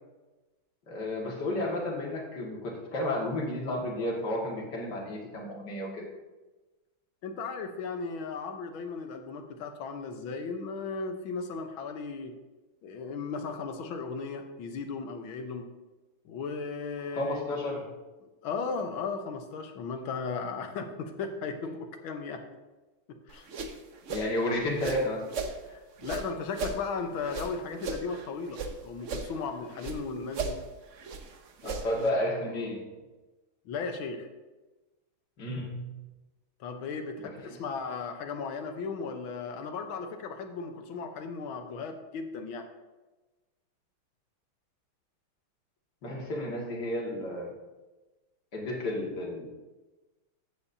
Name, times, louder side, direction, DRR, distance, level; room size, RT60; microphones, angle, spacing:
voice 1, 0.9-6.0 17.1-17.9 24.1-25.2 31.6-32.9 35.4-36.0 37.2-37.6 46.0-47.5 48.5-49.5, left 1 dB, 55° left, -2 dB, 2.5 m, -32 dB
voice 2, 7.2-12.3 12.8-15.7 16.3-17.8 18.4-22.4 23.1-23.5 25.7-30.6 33.7-34.3 36.6-42.7, left 4 dB, 80° left, 6 dB, 1.7 m, -36 dB
sound 1, 23.3-25.6 26.0-28.7 29.0-30.0 30.3-32.1, right 4 dB, 55° right, 0.8 m, -37 dB
14.0 x 8.6 x 2.7 m, 1.2 s
omnidirectional pair, 2.2 m